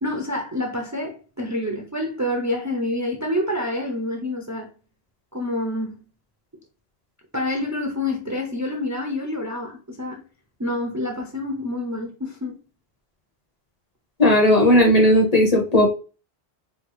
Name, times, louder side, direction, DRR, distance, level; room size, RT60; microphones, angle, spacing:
voice 1, 0.0-4.7 5.3-6.0 7.3-10.2 10.6-12.6, left 1 dB, 20° right, 0.5 m, -27 dB
voice 2, 14.2-15.9, left 1 dB, 40° left, 1.0 m, -15 dB
4.3 x 2.3 x 3.2 m
omnidirectional pair, 1.1 m